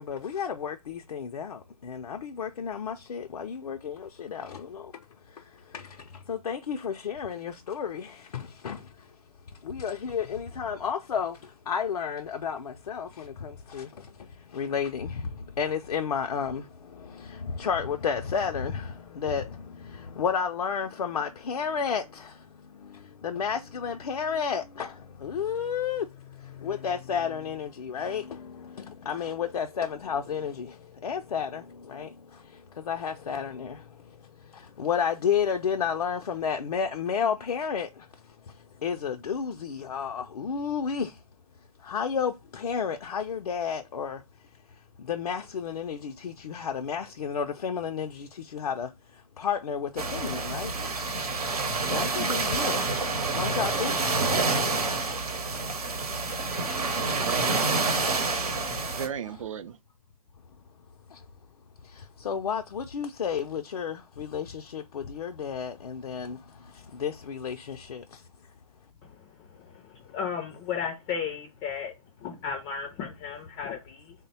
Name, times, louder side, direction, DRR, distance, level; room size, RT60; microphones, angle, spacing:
voice 1, 0.0-1.6 1.9-4.5 6.3-8.1 8.3-8.8 9.7-11.3 11.7-13.1 13.7-13.9 14.5-15.1 15.6-16.6 17.6-18.9 19.2-19.4 20.2-22.0 23.2-24.9 25.2-26.0 26.6-28.2 29.1-30.7 31.0-31.6 31.9-32.1 32.9-33.8 34.8-37.9 38.8-41.1 41.9-44.2 45.1-48.1 48.5-48.9 49.4-50.7 51.9-52.8 53.4-54.0 62.3-64.5 64.7-66.4 67.0-68.0, left 7 dB, 85° left, 0.4 m, -31 dB
sound 1, 50.0-59.1, right 3 dB, 90° right, 0.9 m, -28 dB
voice 2, 56.6-58.4 58.9-59.8, right 8 dB, 60° right, 0.4 m, -37 dB
voice 3, 70.1-71.9 72.2-74.1, left 7 dB, 15° left, 0.3 m, -34 dB
3.2 x 2.1 x 4.1 m
hypercardioid pair, 140°, 19 cm